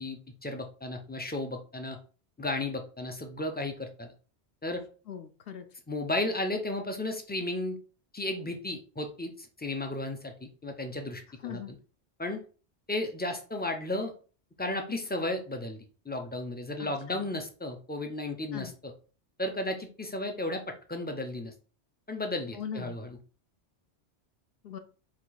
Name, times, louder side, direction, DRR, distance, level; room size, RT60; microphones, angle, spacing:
voice 1, 0.0-2.0 2.4-4.1 4.6-4.8 5.9-7.8 8.1-11.8 12.2-12.4 12.9-14.1 14.6-18.9 19.4-21.5 22.1-23.2, left 2 dB, 15° left, 4 dB, 0.3 m, -34 dB
voice 2, 5.1-5.6 11.4-11.7 16.8-17.2 18.5-18.7 22.5-23.0 24.6-24.8, left 8 dB, 65° left, 8 dB, 0.7 m, -40 dB
4.5 x 2.5 x 4.0 m, 0.38 s
omnidirectional pair, 1.2 m